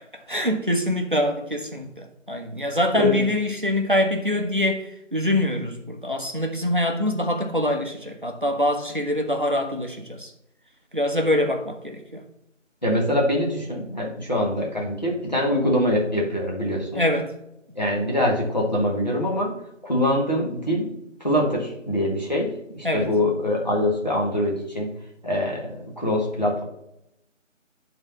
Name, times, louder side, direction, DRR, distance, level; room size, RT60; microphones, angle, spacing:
voice 1, 0.1-10.3 10.9-12.2 16.9-17.3 22.8-23.1, left 1 dB, 40° right, 4 dB, 0.8 m, -24 dB
voice 2, 12.8-17.0 17.7-19.5 19.8-20.9 21.2-24.9 25.2-26.6, left 1 dB, 35° left, -2 dB, 1.5 m, -24 dB
9.4 x 3.9 x 4.1 m, 0.83 s
figure-of-eight pair, 175°, 39 cm